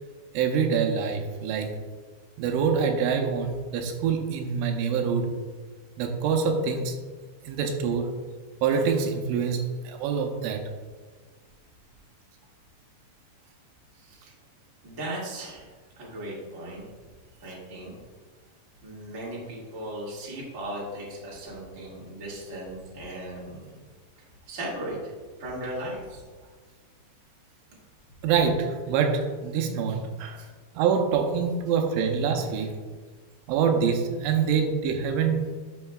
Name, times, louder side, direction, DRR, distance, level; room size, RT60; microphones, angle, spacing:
voice 1, 0.3-1.8 2.4-5.3 6.0-7.0 7.4-8.1 8.6-10.6 28.2-30.4 30.8-32.7 33.5-35.4, right 6 dB, 85° right, 5 dB, 3.2 m, -25 dB
voice 2, 13.9-14.3 14.8-15.7 15.9-16.8 17.4-17.9 18.8-23.8 24.5-25.1 25.4-26.2, right 1 dB, 40° right, -6 dB, 1.0 m, -37 dB
11.5 x 6.5 x 2.4 m, 1.5 s
omnidirectional pair, 5.4 m